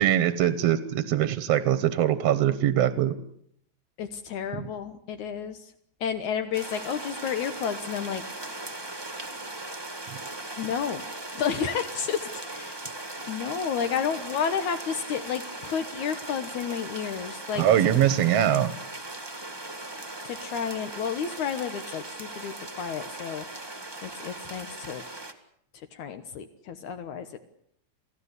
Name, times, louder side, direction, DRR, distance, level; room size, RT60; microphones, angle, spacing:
voice 1, 0.0-3.1 4.5-4.7 17.6-18.7, right 11 dB, 60° right, 12 dB, 1.9 m, -22 dB
voice 2, 4.0-5.7 6.0-8.2 10.6-11.0 11.4-12.8 13.3-17.6 20.2-23.5 24.0-25.0 25.9-27.3, left 7 dB, 70° left, 8 dB, 2.6 m, -31 dB
sound 1, 6.5-25.3, right 2 dB, 10° right, 1.2 m, -39 dB
28.5 x 17.0 x 8.2 m, 0.70 s
omnidirectional pair, 3.6 m